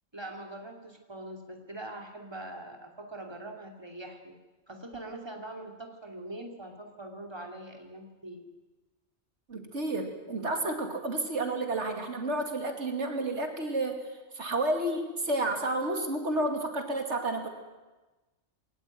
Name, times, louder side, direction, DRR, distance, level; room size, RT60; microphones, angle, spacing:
voice 1, 0.1-4.3 4.7-8.4, right 1 dB, 20° right, 3 dB, 2.8 m, -43 dB
voice 2, 9.5-14.0 14.3-17.5, right 2 dB, 85° right, 5 dB, 2.7 m, -31 dB
22.0 x 18.5 x 9.3 m, 1.2 s
omnidirectional pair, 1.2 m